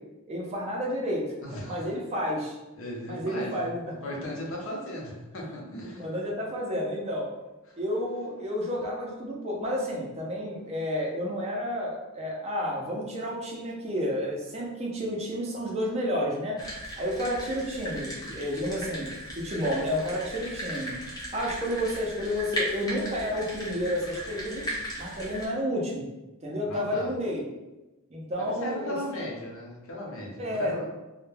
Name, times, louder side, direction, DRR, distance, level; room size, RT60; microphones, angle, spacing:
voice 1, 0.3-1.2 1.7-2.6 3.1-3.9 6.0-7.3 7.8-16.6 17.0-19.1 19.4-21.0 21.3-24.6 25.0-26.1 26.4-27.4 28.1-28.9 30.4-30.7, equal, 30° right, -2 dB, 0.4 m, -30 dB
voice 2, 1.4-1.9 2.7-6.1 7.7-7.8 26.6-27.1 28.4-30.9, left 1 dB, 60° left, -2 dB, 0.7 m, -37 dB
sound 1, 16.6-25.5, equal, 20° left, 0.6 m, -37 dB
2.2 x 2.1 x 3.1 m, 1.1 s
head